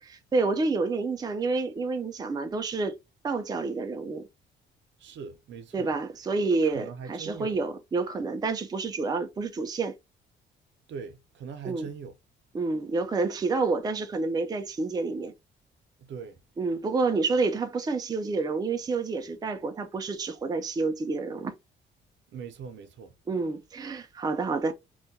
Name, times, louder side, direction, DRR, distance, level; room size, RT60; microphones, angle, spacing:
voice 1, 0.0-2.9 3.2-4.2 5.7-9.9 11.6-11.9 12.5-15.3 16.6-21.5 23.3-24.7, right 3 dB, 20° right, 0.4 m, -29 dB
voice 2, 5.0-5.9 6.5-7.6 10.9-12.2 16.1-16.4 22.3-23.1, right 6 dB, 70° right, 0.6 m, -41 dB
2.3 x 2.1 x 2.6 m
cardioid pair, 90°, 20 cm